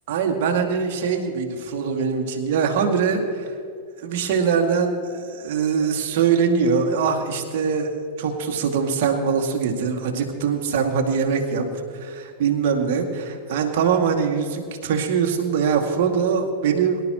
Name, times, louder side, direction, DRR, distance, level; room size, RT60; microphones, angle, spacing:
voice 1, 0.1-3.6 4.0-11.7 11.9-17.0, right 6 dB, 50° right, 2 dB, 2.2 m, -22 dB
24.0 x 12.0 x 3.0 m, 2.4 s
figure-of-eight pair, 90°, 0 cm